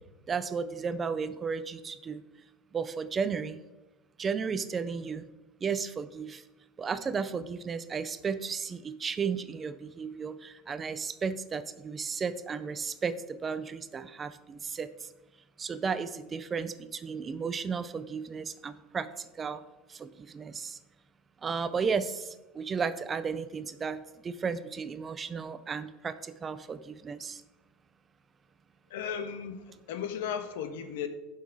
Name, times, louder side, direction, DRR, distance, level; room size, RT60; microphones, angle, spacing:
voice 1, 0.3-2.2 2.7-3.6 4.2-5.3 5.6-6.4 6.8-15.1 15.6-19.6 19.9-20.8 21.4-27.4, right 5 dB, 15° right, 13 dB, 0.4 m, -34 dB
voice 2, 28.9-31.1, left 8 dB, 85° left, 9 dB, 1.1 m, -35 dB
11.5 x 5.6 x 4.8 m, 1.1 s
supercardioid pair, 170°, 0 cm